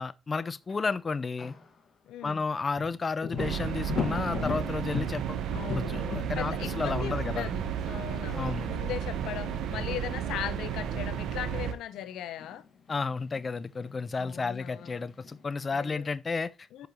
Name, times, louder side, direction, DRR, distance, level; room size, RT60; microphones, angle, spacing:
voice 1, 0.0-1.5 2.2-5.4 5.9-7.5 8.4-8.7 12.9-16.9, left 4 dB, 35° left, 0.5 m, -32 dB
sound 1, 0.7-0.8 1.4-1.7 2.8-8.9 9.2-9.3 9.8-10.0 10.3-10.5 10.8-11.1 12.0-14.5 14.8-15.5, left 6 dB, 50° left, 1.8 m, -38 dB
voice 2, 2.1-2.4 5.5-12.6 14.2-15.0 15.7-16.1 16.7-16.9, left 11 dB, 85° left, 0.7 m, -39 dB
sound 2, 3.4-11.7, right 8 dB, 80° right, 1.1 m, -33 dB
8.0 x 5.3 x 4.4 m
cardioid pair, 90°, 0 cm